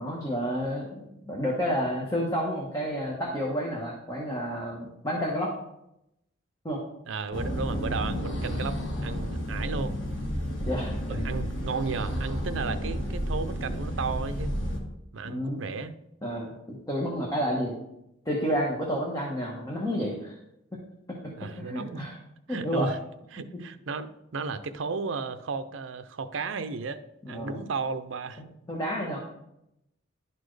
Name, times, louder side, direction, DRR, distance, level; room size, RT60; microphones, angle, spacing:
voice 1, 0.0-5.5 6.6-6.8 10.6-11.2 15.2-15.6 16.2-17.8 18.2-20.3 20.7-20.8 21.1-21.2 21.6-22.1 22.5-22.9 27.2-27.7 28.4-29.2, equal, 20° left, -3 dB, 1.1 m, -30 dB
voice 2, 7.1-10.0 11.1-14.5 15.1-15.9 21.4-22.1 22.5-23.0 23.3-27.0 27.3-28.4, right 4 dB, 70° right, 10 dB, 0.5 m, -34 dB
sound 1, 7.3-14.8, equal, 65° left, 1.4 m, -31 dB
11.5 x 4.2 x 3.2 m, 0.83 s
head